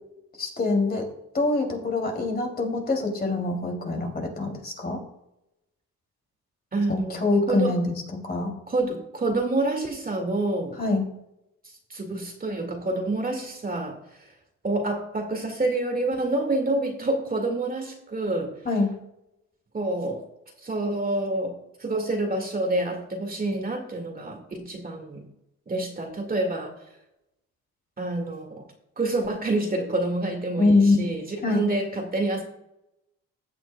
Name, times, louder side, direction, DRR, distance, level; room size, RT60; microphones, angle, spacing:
voice 1, 0.4-1.1 1.3-5.0 6.9-7.9 8.2-8.5 10.8-11.0 18.6-18.9 30.6-31.0 31.4-31.6, left 3 dB, 30° left, 2 dB, 2.9 m, -24 dB
voice 2, 6.7-7.7 8.7-10.8 11.9-14.3 14.6-18.5 19.7-20.2 20.6-25.3 25.7-26.7 28.0-28.7 29.0-32.4, right 2 dB, 30° right, 3 dB, 2.1 m, -28 dB
15.5 x 7.7 x 2.3 m, 0.83 s
cardioid pair, 90°, 30 cm